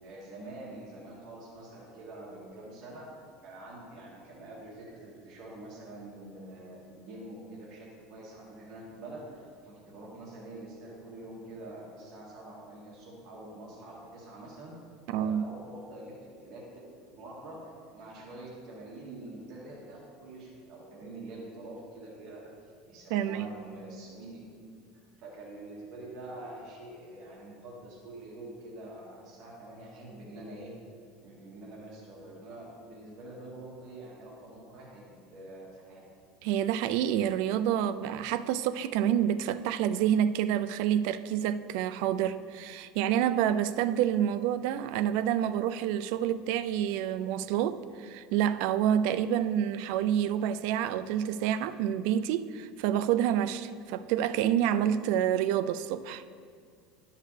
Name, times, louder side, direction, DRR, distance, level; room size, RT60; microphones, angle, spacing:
voice 1, 0.0-3.1 3.4-14.7 15.1-16.6 17.1-22.5 22.9-24.7 25.2-30.7 31.2-36.1, right 2 dB, 50° right, 1.9 m, -46 dB
voice 2, 15.1-15.4 23.1-23.5 36.4-56.2, right 10 dB, 65° right, 0.3 m, -28 dB
11.5 x 6.6 x 3.3 m
supercardioid pair, 145°, 0 cm